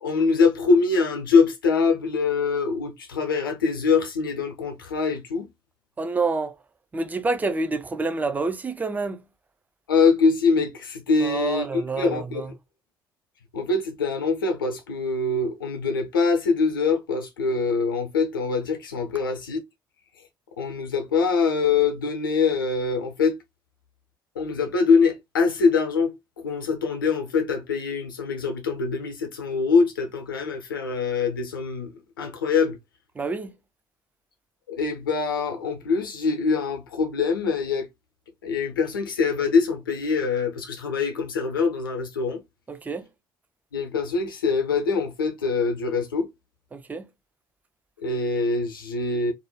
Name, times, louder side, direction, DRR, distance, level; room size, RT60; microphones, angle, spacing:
voice 1, 0.0-5.5 9.9-12.5 13.5-19.6 20.6-23.4 24.4-32.8 34.7-37.9 38.4-42.4 43.7-46.3 48.0-49.3, left 4 dB, 75° left, 0.5 m, -24 dB
voice 2, 6.0-6.5 6.9-9.2 11.2-12.5 33.2-33.5 42.7-43.1 46.7-47.1, right 3 dB, 15° right, 0.3 m, -28 dB
2.4 x 2.1 x 2.9 m
figure-of-eight pair, 50°, 11 cm